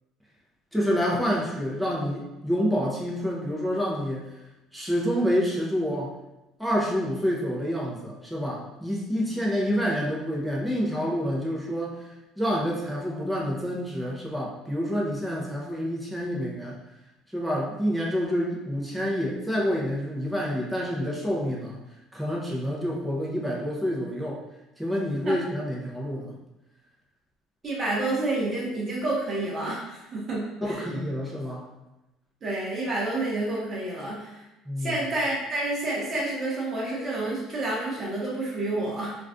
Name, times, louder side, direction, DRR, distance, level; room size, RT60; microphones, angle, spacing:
voice 1, 0.7-4.3 4.7-6.1 6.6-16.8 17.3-21.8 22.1-24.4 24.8-26.3 30.6-31.7 34.7-35.0, equal, ahead, -4 dB, 0.5 m, -28 dB
voice 2, 27.6-31.0 32.4-34.4 34.8-39.2, right 2 dB, 25° right, -5 dB, 0.9 m, -29 dB
2.5 x 2.3 x 3.4 m, 0.98 s
cardioid pair, 160°, 0 cm